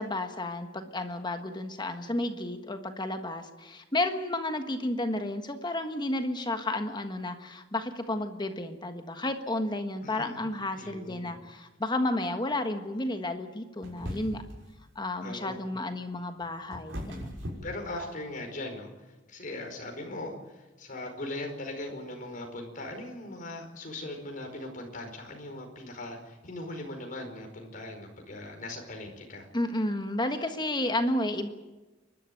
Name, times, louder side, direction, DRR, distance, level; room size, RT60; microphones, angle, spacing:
voice 1, 0.0-14.4 14.9-17.3 29.5-31.5, left 1 dB, 25° left, 7 dB, 1.4 m, -32 dB
voice 2, 10.0-10.4 10.7-11.4 15.2-15.6 17.6-18.9 19.3-29.5, left 2 dB, 45° left, 3 dB, 4.9 m, -39 dB
sound 1, 13.8-14.6 16.1-18.4, equal, 80° right, 6.4 m, -39 dB
29.5 x 12.5 x 9.3 m, 1.1 s
head